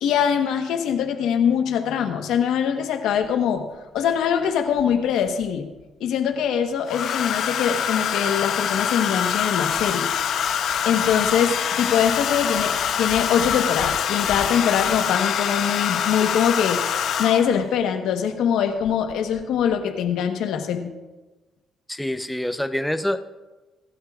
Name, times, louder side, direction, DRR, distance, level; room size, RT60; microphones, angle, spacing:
voice 1, 0.0-3.7 3.9-5.7 6.0-10.1 10.8-20.9, left 8 dB, 85° left, 5 dB, 1.2 m, -23 dB
Domestic sounds home sounds, 3.2-3.3 4.8-5.4 6.9-17.6 18.8-19.1 19.4-19.7, left 8 dB, 70° left, 0.8 m, -25 dB
voice 2, 21.9-23.2, left 1 dB, 5° left, 9 dB, 0.7 m, -26 dB
22.0 x 11.0 x 2.5 m, 1.2 s
cardioid pair, 90°, 0 cm